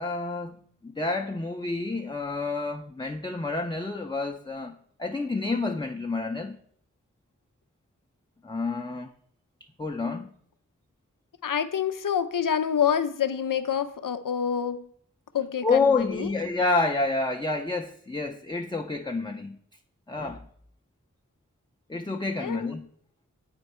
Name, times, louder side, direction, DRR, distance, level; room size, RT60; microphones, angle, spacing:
voice 1, 0.0-6.6 8.4-9.1 9.8-10.3 15.6-19.6 20.1-20.5 21.9-22.9, left 3 dB, 15° left, 0.5 m, -29 dB
voice 2, 11.4-14.9 15.3-16.3 22.4-22.7, left 8 dB, 85° left, 0.6 m, -27 dB
9.0 x 4.5 x 4.3 m
wide cardioid pair, 45°, 32 cm